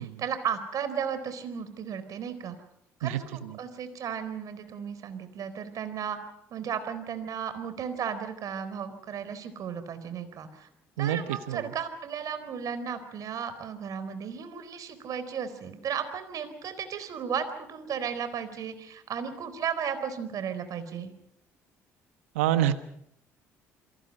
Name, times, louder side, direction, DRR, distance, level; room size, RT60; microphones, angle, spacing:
voice 1, 0.0-2.6 3.0-6.2 6.5-10.7 11.0-21.1, right 7 dB, 55° right, 11 dB, 4.1 m, -34 dB
voice 2, 3.0-3.6 11.0-11.7 22.3-22.8, right 11 dB, 80° right, 11 dB, 1.3 m, -27 dB
28.5 x 23.0 x 5.5 m, 0.74 s
hypercardioid pair, 55°, 7 cm